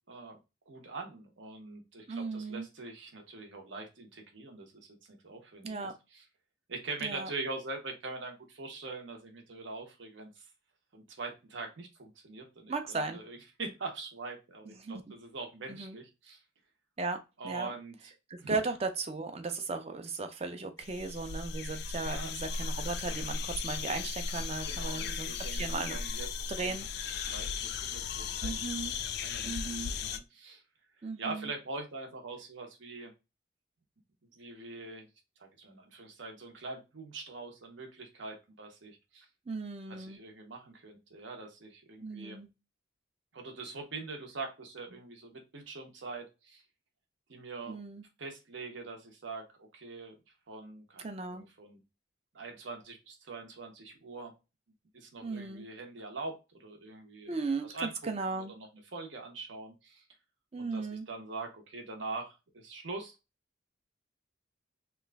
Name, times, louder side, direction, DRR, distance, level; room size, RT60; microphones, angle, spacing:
voice 1, 0.1-0.4 0.7-6.2 6.7-10.5 10.9-12.7 13.1-16.4 17.4-18.1 18.4-18.5 22.0-22.3 24.6-26.3 26.6-26.7 27.2-28.6 29.1-30.6 31.2-33.1 34.3-35.1 35.4-39.3 39.9-42.4 43.3-46.6 47.3-47.8 48.2-50.2 50.5-51.8 52.3-54.3 54.9-57.3 57.6-58.1 58.5-60.0 60.6-63.2, right 3 dB, 70° right, 3 dB, 0.8 m, -43 dB
voice 2, 2.1-2.7 5.6-5.9 7.0-7.3 12.7-13.2 14.7-15.1 15.7-16.0 17.0-17.2 17.4-17.7 18.3-26.0 26.5-27.3 28.4-28.9 29.4-29.9 31.0-31.5 39.5-40.2 42.0-42.5 47.7-48.0 51.0-51.4 55.2-55.7 57.3-58.5 60.5-61.1, right 3 dB, 30° right, 7 dB, 0.5 m, -36 dB
sound 1, 20.8-30.2, left 5 dB, 55° left, 0.3 m, -36 dB
3.0 x 2.3 x 3.3 m, 0.26 s
head